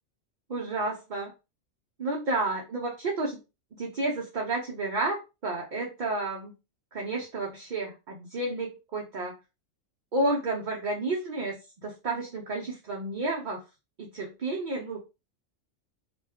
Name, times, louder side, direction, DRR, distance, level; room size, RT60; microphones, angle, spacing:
voice 1, 0.5-1.3 2.0-3.4 3.8-6.5 6.9-9.4 10.1-13.6 14.0-15.0, right 2 dB, 55° right, -1 dB, 0.5 m, -31 dB
2.4 x 2.2 x 3.4 m, 0.28 s
omnidirectional pair, 1.3 m